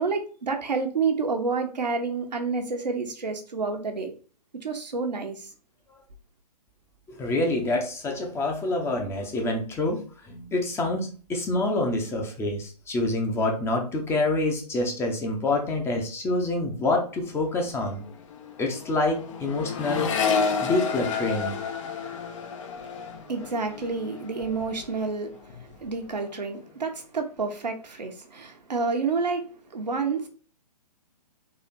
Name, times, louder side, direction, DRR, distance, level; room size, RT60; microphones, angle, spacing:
voice 1, 0.0-4.1 4.6-5.5 23.3-25.3 25.8-30.3, right 4 dB, 80° right, 1.0 m, -29 dB
voice 2, 7.1-18.1 18.6-20.1 20.6-21.6, left 2 dB, 10° left, 0.7 m, -27 dB
Accelerating revving vroom, 17.0-17.3 17.5-25.1 25.4-26.0, left 5 dB, 45° left, 0.8 m, -31 dB
4.0 x 2.8 x 4.1 m
figure-of-eight pair, 125°, 21 cm